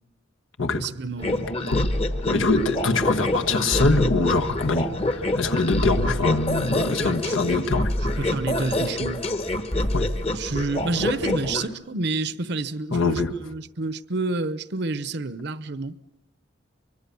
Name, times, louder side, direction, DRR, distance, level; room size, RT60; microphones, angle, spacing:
voice 1, 0.8-1.5 6.9-7.4 8.2-9.2 10.3-16.0, right 3 dB, 60° right, 0.9 m, -29 dB
sound 1, 1.2-11.7, left 1 dB, 30° left, 1.1 m, -26 dB
voice 2, 1.7-2.0 2.3-8.2 9.9-10.1 12.9-13.3, left 3 dB, 85° left, 1.5 m, -23 dB
24.0 x 23.5 x 7.0 m
head